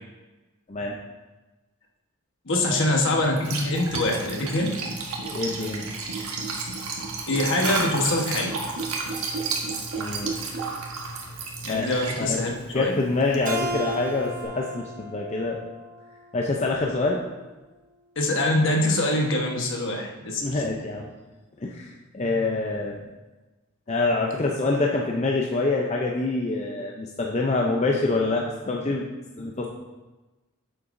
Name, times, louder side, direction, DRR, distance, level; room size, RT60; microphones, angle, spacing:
voice 1, 2.5-4.7 7.3-8.6 11.6-12.9 18.2-20.6, left 1 dB, 60° left, 1 dB, 1.2 m, -24 dB
Liquid, 3.2-14.4, right 3 dB, 80° right, 1.3 m, -32 dB
voice 2, 5.2-5.8 10.0-10.3 11.7-11.9 12.2-12.5 12.7-15.6 16.3-17.2 20.4-21.0 21.6-21.9 22.1-23.0 23.9-29.0 29.4-29.7, left 3 dB, 30° left, -1 dB, 0.6 m, -26 dB
Keyboard (musical), 13.5-16.7, equal, 40° right, 0.8 m, -35 dB
8.8 x 6.9 x 2.6 m, 1.1 s
head